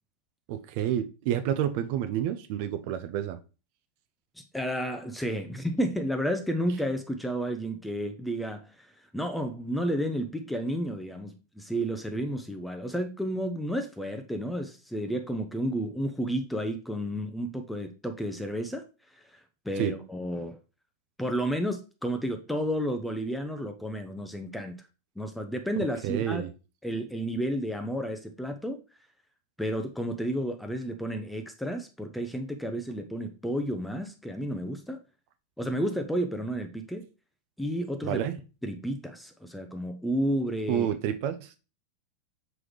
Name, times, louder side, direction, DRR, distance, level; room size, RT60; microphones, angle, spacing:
voice 1, 0.5-3.4 19.8-19.9 26.0-26.5 38.0-38.4 40.7-41.6, right 10 dB, 45° right, 0.5 m, -29 dB
voice 2, 4.5-18.8 19.1-19.2 19.6-20.6 21.2-24.7 25.2-26.4 26.8-28.8 29.6-35.0 35.6-37.0 37.6-38.2 38.6-40.9, equal, 5° left, 0.6 m, -31 dB
6.1 x 4.9 x 3.2 m
figure-of-eight pair, 90°, 0 cm